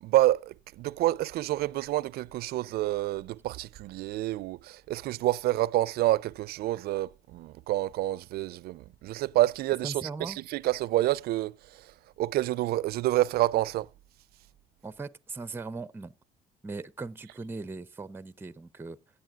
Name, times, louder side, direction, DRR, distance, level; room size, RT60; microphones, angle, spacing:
voice 1, 0.0-11.9 12.2-13.9, right 16 dB, 65° right, 0.4 m, -28 dB
voice 2, 9.8-10.4 14.8-16.1 16.6-19.0, right 3 dB, 15° right, 0.5 m, -39 dB
17.0 x 8.3 x 2.4 m
cardioid pair, 110°, 17 cm